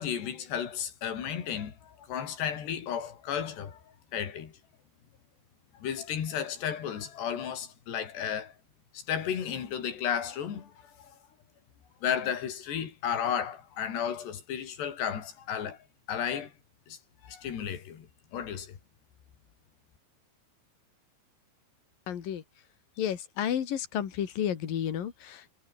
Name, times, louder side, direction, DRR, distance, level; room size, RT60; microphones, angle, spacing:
voice 1, 0.0-3.8 4.1-4.5 5.8-8.5 8.9-10.7 11.0-11.1 12.0-15.8 16.1-16.5 16.9-17.0 17.2-18.1 18.3-18.8, left 8 dB, 90° left, 5.3 m, -33 dB
voice 2, 22.1-22.4 23.0-25.5, left 9 dB, 60° left, 4.1 m, -32 dB
omnidirectional pair, 4.7 m